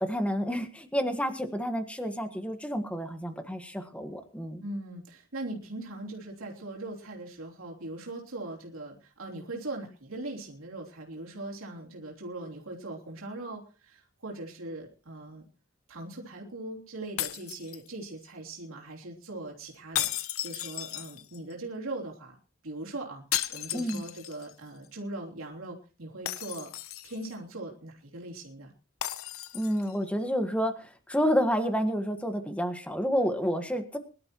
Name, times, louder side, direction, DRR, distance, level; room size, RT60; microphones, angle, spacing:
voice 1, 0.0-4.6 23.7-24.0 29.5-34.0, equal, 5° left, 8 dB, 1.5 m, -29 dB
voice 2, 4.6-15.5 15.9-20.1 20.4-22.3 22.6-23.2 23.5-26.7 27.0-28.7, right 2 dB, 80° right, -2 dB, 3.3 m, -40 dB
sound 1, 17.2-18.3 19.9-21.5 23.3-24.5 24.8-24.9 26.3-27.3 29.0-29.9, left 12 dB, 85° left, 0.8 m, -35 dB
22.5 x 12.0 x 3.0 m, 0.33 s
head